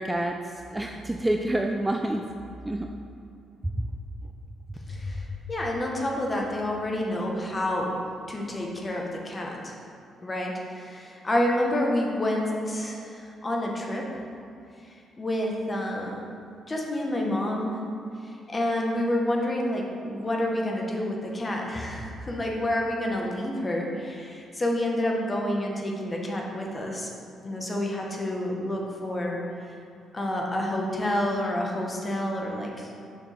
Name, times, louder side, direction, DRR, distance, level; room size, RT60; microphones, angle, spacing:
voice 1, 0.0-2.3 2.6-2.9 3.8-3.9, right 1 dB, 10° right, 3 dB, 0.4 m, -28 dB
voice 2, 4.9-8.0 8.3-9.7 10.2-14.1 15.2-16.2 16.7-17.8 18.5-27.1 27.4-29.4 30.1-32.9, left 1 dB, 25° left, -1 dB, 1.2 m, -28 dB
6.6 x 6.1 x 3.5 m, 2.6 s
cardioid pair, 90°, 0 cm